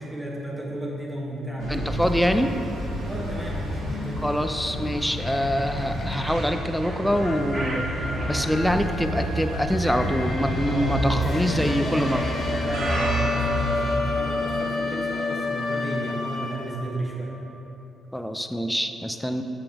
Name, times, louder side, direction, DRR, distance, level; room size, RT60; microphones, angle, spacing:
voice 1, 0.0-1.9 3.0-4.3 10.7-11.2 12.6-17.4, right 1 dB, 15° right, -3 dB, 1.4 m, -33 dB
sound 1, 1.6-17.0, left 3 dB, 55° left, 1.0 m, -32 dB
sound 2, 1.6-13.9, equal, 85° right, 1.4 m, -30 dB
voice 2, 1.7-2.5 4.2-7.9 8.3-12.3 18.1-19.4, equal, 5° left, 7 dB, 0.4 m, -25 dB
sound 3, 6.1-8.5 11.7-13.8, right 1 dB, 35° right, 1.6 m, -35 dB
7.1 x 6.8 x 3.5 m, 2.9 s
cardioid pair, 90°, 0 cm